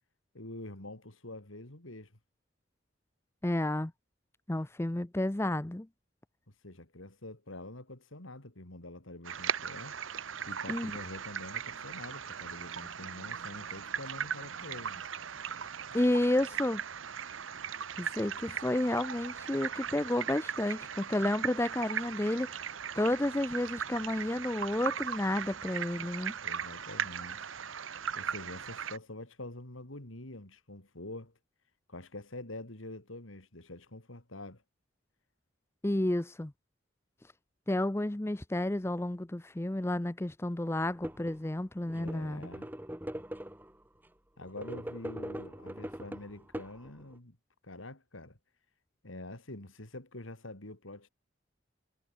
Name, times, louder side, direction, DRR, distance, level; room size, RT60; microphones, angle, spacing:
voice 1, 0.3-2.1 6.6-10.0 10.5-15.0 26.4-27.4 28.2-31.3 31.9-34.6 41.8-42.7 44.4-47.4 47.6-48.4 49.0-51.1, left 2 dB, 90° left, 3.7 m, -46 dB
voice 2, 3.4-3.9 4.5-5.9 10.7-10.9 15.9-16.8 18.0-22.5 23.0-26.3 35.8-36.5 37.7-42.5, left 1 dB, 15° left, 0.5 m, -31 dB
sound 1, 9.2-29.0, right 7 dB, 85° right, 1.0 m, -38 dB
sound 2, 40.9-41.4 41.8-43.8 44.4-47.2, equal, 10° right, 1.2 m, -42 dB
head